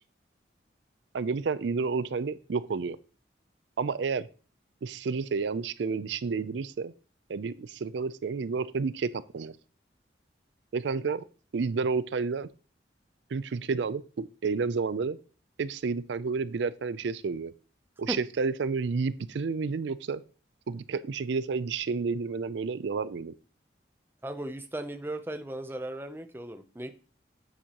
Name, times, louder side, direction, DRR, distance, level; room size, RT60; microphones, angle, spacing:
voice 1, 1.1-3.0 3.8-4.3 4.8-6.9 7.3-9.5 10.7-11.2 11.5-12.5 13.3-15.2 15.6-17.5 18.0-20.2 20.7-23.3, right 4 dB, 75° right, 16 dB, 0.4 m, -30 dB
voice 2, 24.2-26.9, right 1 dB, 10° right, 8 dB, 0.6 m, -37 dB
9.1 x 8.2 x 2.9 m, 0.38 s
head